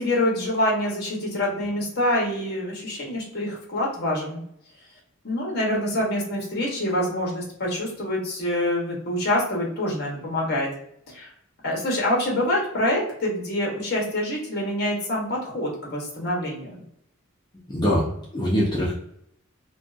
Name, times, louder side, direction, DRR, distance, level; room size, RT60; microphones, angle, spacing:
voice 1, 0.0-4.4 5.2-10.7 11.1-11.3 11.6-16.8, left 1 dB, 45° left, -2 dB, 0.9 m, -26 dB
voice 2, 17.7-18.9, equal, 20° left, -5 dB, 0.4 m, -23 dB
2.6 x 2.3 x 2.4 m, 0.72 s
head